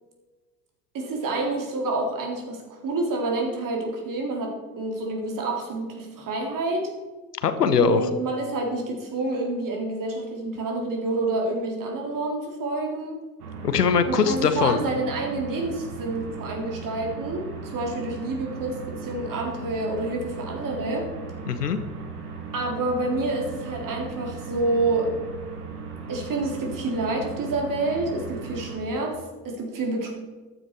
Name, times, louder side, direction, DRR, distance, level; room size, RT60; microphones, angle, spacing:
voice 1, 0.9-6.9 7.8-13.2 14.0-21.1 22.5-25.1 26.1-29.1 29.4-30.1, right 2 dB, 45° right, 1 dB, 3.7 m, -28 dB
voice 2, 7.4-8.1 13.6-14.8 21.5-21.8, left 6 dB, 85° left, 11 dB, 1.0 m, -21 dB
sound 1, 13.4-28.8, right 5 dB, 75° right, 2.1 m, -37 dB
14.0 x 10.0 x 4.8 m, 1.3 s
figure-of-eight pair, 60°, 46 cm